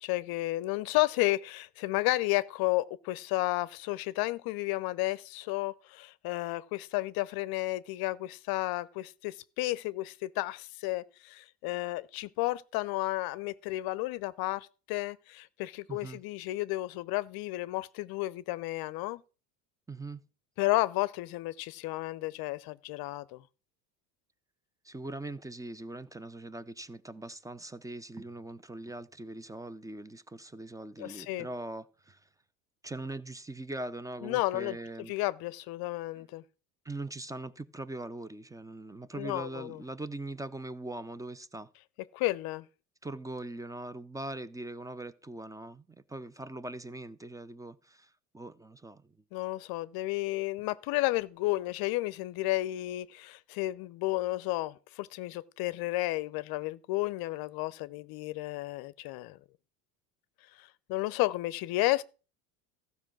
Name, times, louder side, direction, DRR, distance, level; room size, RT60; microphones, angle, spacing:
voice 1, 0.0-19.2 20.6-23.4 31.0-31.5 34.2-34.8 35.1-36.4 39.1-39.8 42.1-42.6 49.3-59.4 60.6-62.0, left 18 dB, 50° left, 0.6 m, -32 dB
voice 2, 15.9-16.2 19.9-20.2 24.8-32.3 32.8-35.1 36.2-36.3 36.8-41.7 43.0-49.2, right 2 dB, 5° right, 0.5 m, -41 dB
14.5 x 5.4 x 6.0 m
hypercardioid pair, 75°, 48 cm